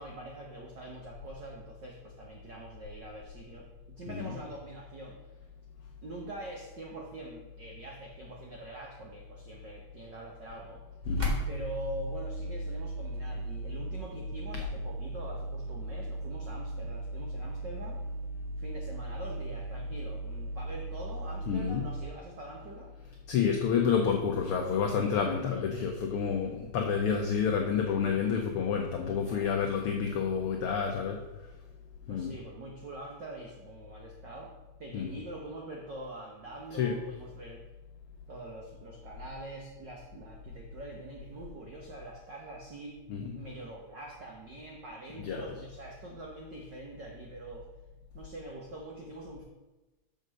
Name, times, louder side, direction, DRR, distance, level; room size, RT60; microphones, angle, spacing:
voice 1, 0.0-3.7 4.0-5.2 6.0-10.8 11.5-18.0 18.6-22.9 25.2-25.5 28.0-28.4 29.2-29.5 32.1-34.5 34.8-37.6 38.3-43.0 43.3-47.7 48.1-49.4, right 2 dB, 75° right, 0 dB, 1.0 m, -44 dB
sound 1, 11.0-22.1, right 1 dB, 30° right, 0.7 m, -36 dB
voice 2, 11.1-11.4 21.5-21.8 23.3-31.2 32.1-32.3 34.9-35.2 36.7-37.0 43.1-43.3 45.2-45.5, left 6 dB, 80° left, 3 dB, 1.2 m, -29 dB
6.4 x 5.3 x 6.3 m, 1.1 s
omnidirectional pair, 3.3 m